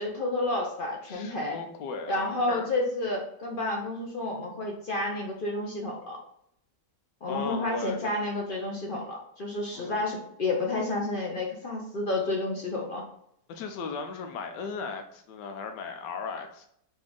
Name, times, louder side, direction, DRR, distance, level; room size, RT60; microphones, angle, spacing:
voice 1, 0.0-1.6 2.1-6.2 7.2-13.0, left 2 dB, 55° left, 0 dB, 0.6 m, -30 dB
voice 2, 1.1-2.7 7.3-8.1 9.7-10.0 13.5-16.7, left 5 dB, 90° left, 5 dB, 1.3 m, -36 dB
4.2 x 2.9 x 3.7 m, 0.71 s
omnidirectional pair, 1.8 m